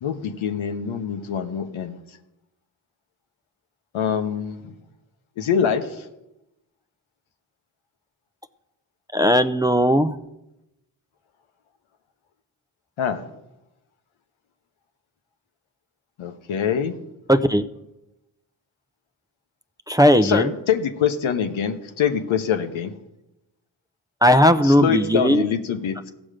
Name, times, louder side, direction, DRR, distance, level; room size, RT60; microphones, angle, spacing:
voice 1, 0.0-2.0 3.9-4.7 5.4-6.0 13.0-13.2 16.2-17.0 20.2-22.9 24.6-26.1, left 8 dB, 80° left, 7 dB, 1.0 m, -24 dB
voice 2, 9.1-10.2 17.3-17.6 19.9-20.5 24.2-25.5, equal, 10° right, 8 dB, 0.6 m, -17 dB
15.5 x 6.2 x 5.0 m, 0.92 s
supercardioid pair, 45°, 47 cm